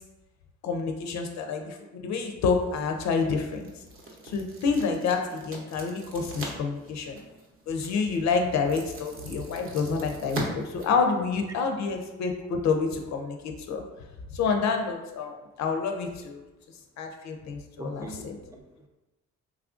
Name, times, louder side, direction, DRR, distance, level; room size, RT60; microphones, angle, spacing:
voice 1, 0.6-3.7 4.2-7.2 7.7-13.8 14.3-16.4 17.0-18.4, left 5 dB, 65° left, 4 dB, 0.5 m, -28 dB
sound 1, 2.6-11.6, right 2 dB, 45° right, 0.7 m, -43 dB
voice 2, 17.8-18.9, right 2 dB, 10° right, 3 dB, 0.3 m, -42 dB
3.1 x 2.4 x 2.4 m, 1.1 s
cardioid pair, 90°, 30 cm